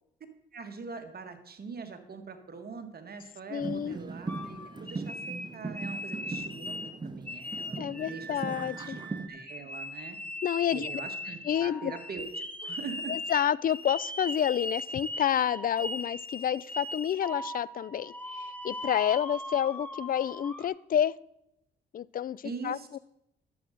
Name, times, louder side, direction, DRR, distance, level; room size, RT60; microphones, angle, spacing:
voice 1, 0.5-9.0 9.3-10.2 10.7-13.1 22.4-23.0, right 5 dB, 50° right, 7 dB, 1.6 m, -43 dB
voice 2, 3.5-4.0 7.8-9.0 10.4-10.9 11.5-11.9 13.1-18.1 18.4-21.1 21.9-23.0, left 10 dB, 45° left, 22 dB, 0.4 m, -29 dB
sound 1, 3.6-9.3, right 3 dB, 20° right, 1.0 m, -39 dB
sound 2, 4.3-6.9 7.3-20.7, left 1 dB, 5° left, 1.3 m, -39 dB
11.0 x 7.7 x 5.1 m, 0.83 s
supercardioid pair, 60°, 21 cm